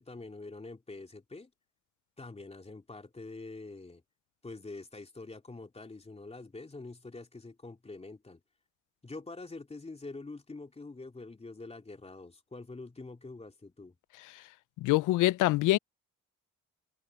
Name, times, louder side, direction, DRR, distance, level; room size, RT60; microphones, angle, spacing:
voice 1, 0.0-1.5 2.2-4.0 4.4-8.4 9.0-14.0, left 3 dB, 20° left, 3.1 m, -45 dB
voice 2, 14.8-15.8, left 17 dB, 85° left, 0.5 m, -25 dB
cardioid pair, 90°, 30 cm